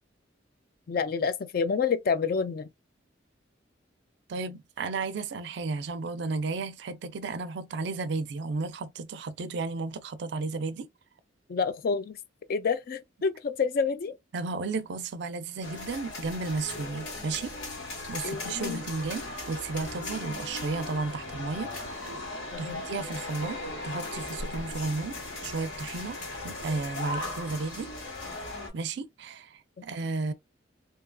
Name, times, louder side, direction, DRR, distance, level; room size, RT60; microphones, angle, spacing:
voice 1, 0.9-2.7 11.5-12.2 12.5-14.1 18.2-18.8 22.5-22.8, left 5 dB, 50° left, 0.3 m, -28 dB
voice 2, 4.3-10.9 14.3-17.5 18.1-21.7 22.6-23.6 23.8-26.2 26.4-27.9 28.7-30.3, right 3 dB, 65° right, 0.4 m, -33 dB
sound 1, 15.6-28.7, left 2 dB, 85° left, 1.7 m, -38 dB
2.7 x 2.4 x 2.2 m
head